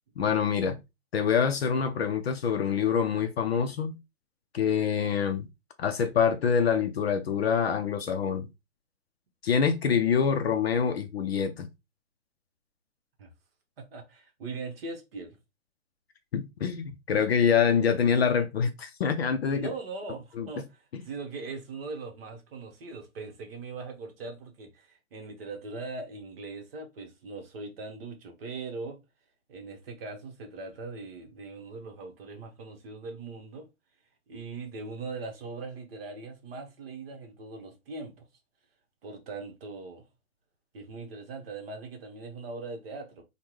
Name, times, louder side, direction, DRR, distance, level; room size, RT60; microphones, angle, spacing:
voice 1, 0.2-0.8 1.1-4.0 4.5-5.5 5.8-8.5 9.4-11.7 16.3-19.7 20.4-20.5, left 7 dB, 50° left, 0.4 m, -25 dB
voice 2, 13.8-15.4 19.5-29.0 29.5-33.7 34.3-38.2 39.0-40.0 40.7-43.2, right 3 dB, 45° right, 0.9 m, -40 dB
3.5 x 2.2 x 3.0 m
hypercardioid pair, 150°, 42 cm